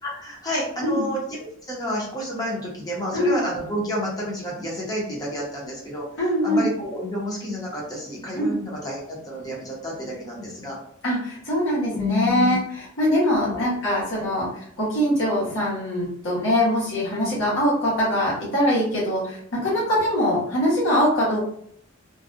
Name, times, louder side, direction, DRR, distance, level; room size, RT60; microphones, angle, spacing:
voice 1, 0.0-6.0 6.4-10.8 11.9-12.6 13.3-13.6 14.2-14.3, left 1 dB, 20° left, -4 dB, 0.9 m, -30 dB
voice 2, 3.1-3.5 6.2-6.7 8.3-8.6 11.0-21.4, equal, 75° left, -7 dB, 1.2 m, -23 dB
2.6 x 2.3 x 2.5 m, 0.67 s
head